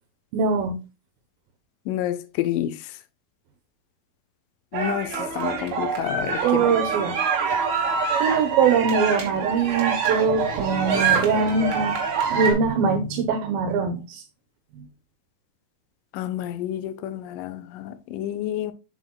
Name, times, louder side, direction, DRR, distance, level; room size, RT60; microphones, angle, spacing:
voice 1, 0.3-0.8 6.4-7.2 8.2-12.0 12.3-14.2, right 5 dB, 80° right, 2.5 m, -22 dB
voice 2, 1.9-2.8 4.7-6.7 16.1-18.7, left 12 dB, 80° left, 2.1 m, -29 dB
sound 1, 4.7-12.5, right 6 dB, 55° right, 1.6 m, -25 dB
7.4 x 7.1 x 2.2 m
omnidirectional pair, 4.2 m